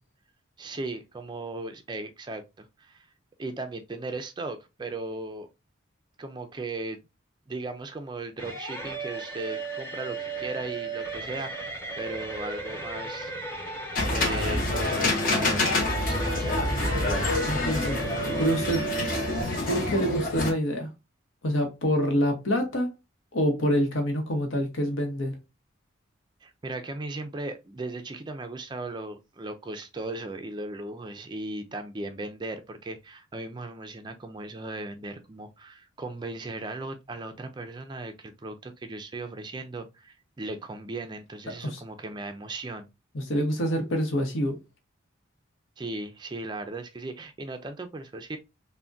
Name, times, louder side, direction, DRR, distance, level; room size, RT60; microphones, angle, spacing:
voice 1, 0.6-3.1 3.4-5.5 6.2-7.0 7.5-11.7 11.9-13.3 14.0-17.3 26.4-42.9 45.8-48.4, right 2 dB, 20° right, 0.3 m, -37 dB
sound 1, 8.4-19.4, right 3 dB, 15° left, 0.9 m, -36 dB
sound 2, 13.9-20.5, left 2 dB, 45° left, 0.8 m, -27 dB
voice 2, 17.4-18.0 18.4-18.8 19.7-20.9 21.4-22.9 23.3-25.4 41.6-41.8 43.1-44.6, equal, 75° left, 0.9 m, -26 dB
3.4 x 2.1 x 2.5 m
head